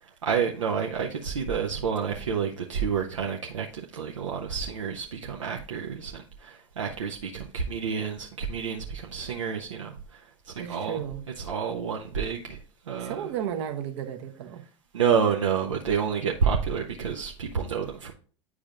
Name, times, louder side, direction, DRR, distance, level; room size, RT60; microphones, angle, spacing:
voice 1, 0.2-3.7 3.9-11.0 11.4-12.6 12.9-13.3 14.9-18.1, right 6 dB, 85° right, 0 dB, 0.6 m, -29 dB
voice 2, 10.6-11.2 13.0-14.6, right 9 dB, 65° right, 6 dB, 0.9 m, -34 dB
9.0 x 4.8 x 2.4 m, 0.41 s
hypercardioid pair, 80°, 16 cm